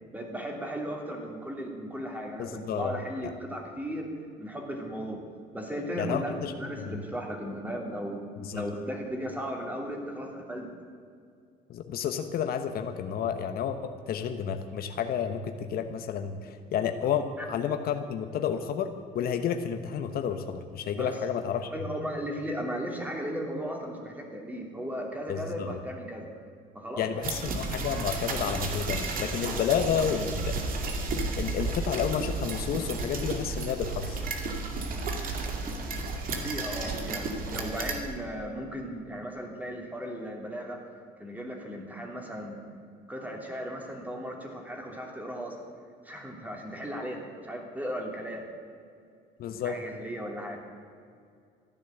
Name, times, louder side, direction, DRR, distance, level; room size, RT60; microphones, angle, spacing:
voice 1, 0.1-4.1 4.4-5.2 5.5-8.2 8.5-10.7 17.4-17.5 21.0-21.1 21.7-26.3 26.7-27.1 36.2-40.8 41.2-42.6 43.1-45.6 46.0-48.5 49.5-50.6, equal, 10° right, 1 dB, 3.0 m, -36 dB
voice 2, 2.4-2.9 3.2-3.3 6.0-7.0 8.4-8.6 11.7-21.7 25.3-25.8 27.0-30.5 31.4-34.2 49.4-49.8, left 8 dB, 60° left, 7 dB, 1.1 m, -31 dB
sound 1, 27.2-38.0, right 3 dB, 55° right, 2.4 m, -32 dB
14.5 x 10.5 x 7.9 m, 2.3 s
cardioid pair, 110°, 17 cm